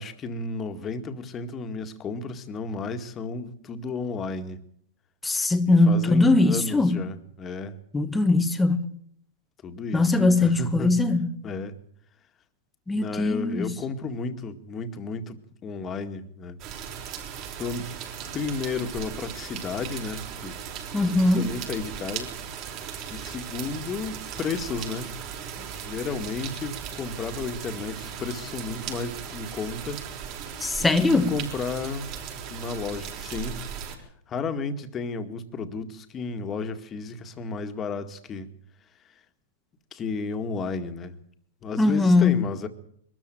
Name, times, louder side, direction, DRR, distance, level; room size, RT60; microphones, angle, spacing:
voice 1, 0.0-4.6 5.9-7.8 9.6-10.9 11.4-11.8 13.0-16.6 17.6-17.9 18.3-20.6 21.0-22.4 23.1-25.1 25.5-30.0 30.8-32.1 32.5-38.5 39.0-39.2 39.9-41.1 41.6-42.7, left 4 dB, 25° left, 2.0 m, -33 dB
voice 2, 5.2-7.0 7.9-8.9 9.9-11.3 12.9-13.7 20.9-21.5 30.6-31.3 41.8-42.4, left 2 dB, 10° left, 1.3 m, -21 dB
sound 1, 16.6-34.0, right 8 dB, 45° right, 5.3 m, -37 dB
22.0 x 13.5 x 9.2 m
hypercardioid pair, 135°, 0 cm